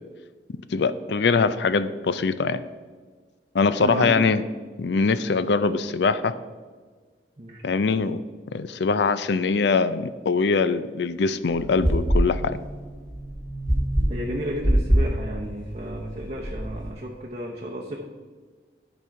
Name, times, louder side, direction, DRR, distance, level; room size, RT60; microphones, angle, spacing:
voice 1, 0.7-2.6 3.5-4.4 4.8-6.3 7.6-8.2 8.5-12.6, left 4 dB, 65° left, 14 dB, 0.4 m, -22 dB
voice 2, 3.8-4.3 7.4-7.8 14.1-18.0, equal, 35° right, -2 dB, 0.8 m, -33 dB
sound 1, 11.5-16.9, equal, 5° left, 2.2 m, -25 dB
11.0 x 5.3 x 4.6 m, 1.5 s
head